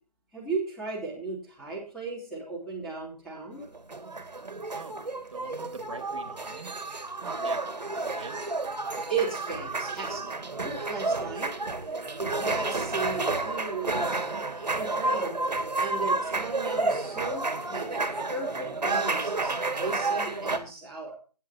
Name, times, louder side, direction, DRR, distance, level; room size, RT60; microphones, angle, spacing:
voice 1, 0.3-3.6 9.1-11.5 12.2-15.4 15.8-18.0 18.3-21.1, right 4 dB, ahead, -6 dB, 3.2 m, -35 dB
sound 1, 3.6-20.6, right 3 dB, 80° right, 2.4 m, -31 dB
voice 2, 4.7-5.0 5.3-6.7 7.2-7.6 7.9-8.4, right 5 dB, 45° right, 8 dB, 2.6 m, -43 dB
17.0 x 10.0 x 2.9 m, 0.35 s
figure-of-eight pair, 160°, 21 cm